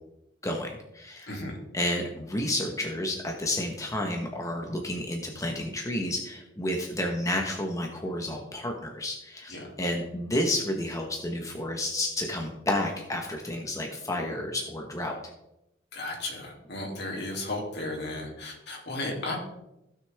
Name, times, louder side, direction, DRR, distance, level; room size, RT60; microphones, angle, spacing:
voice 1, 0.4-1.4 1.7-15.1, left 1 dB, 20° left, 1 dB, 1.1 m, -31 dB
voice 2, 1.3-1.6 9.5-9.7 15.9-19.4, left 2 dB, 65° left, 0 dB, 2.8 m, -34 dB
16.0 x 6.4 x 3.5 m, 0.87 s
head